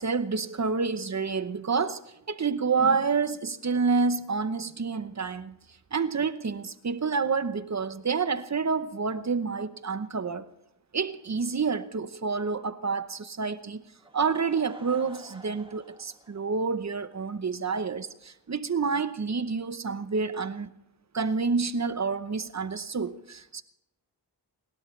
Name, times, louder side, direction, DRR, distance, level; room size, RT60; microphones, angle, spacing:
voice 1, 0.0-2.0 2.3-5.5 5.9-10.5 10.9-13.8 14.1-20.7 21.1-23.6, right 5 dB, 40° right, 0.9 m, -28 dB
Laughter / Crowd, 13.8-17.3 17.6-17.7 18.2-18.3 18.5-18.6, right 1 dB, 10° right, 2.0 m, -51 dB
30.0 x 12.5 x 3.3 m
wide cardioid pair, 90°, 43 cm